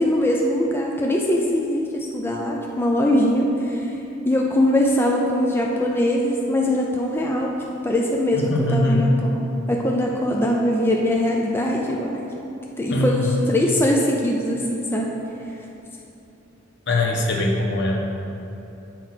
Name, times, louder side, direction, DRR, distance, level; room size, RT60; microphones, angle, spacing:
voice 1, 0.0-4.0 4.2-7.5 7.8-12.3 12.8-15.1, left 1 dB, 10° left, -1 dB, 0.4 m, -22 dB
voice 2, 8.3-9.2 12.9-13.4 16.9-18.0, left 1 dB, 60° left, -1 dB, 1.0 m, -21 dB
7.5 x 4.5 x 5.8 m, 2.9 s
head